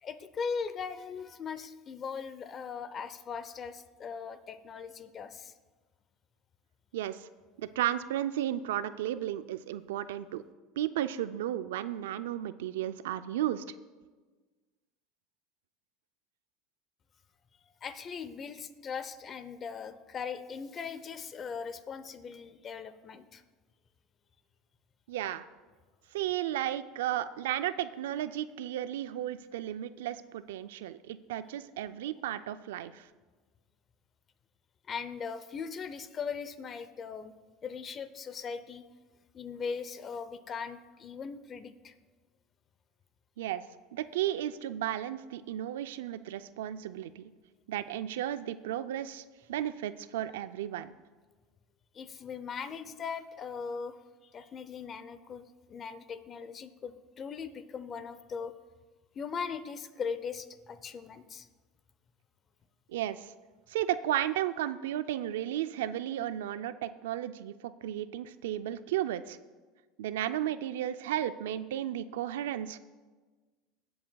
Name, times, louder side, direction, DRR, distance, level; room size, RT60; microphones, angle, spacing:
voice 1, 0.0-5.5 17.8-23.4 34.9-37.3 37.6-38.8 39.3-41.9 51.9-54.0 54.2-58.5 59.1-61.5, left 6 dB, 35° left, 13 dB, 0.6 m, -39 dB
voice 2, 6.9-7.3 7.6-10.4 10.8-13.6 25.1-25.4 26.1-33.1 43.4-43.6 43.9-47.3 47.7-49.2 49.5-51.0 62.9-63.3 63.7-69.4 70.0-72.8, right 12 dB, 90° right, 13 dB, 0.4 m, -34 dB
18.5 x 7.8 x 2.3 m, 1.3 s
supercardioid pair, 110°, 0 cm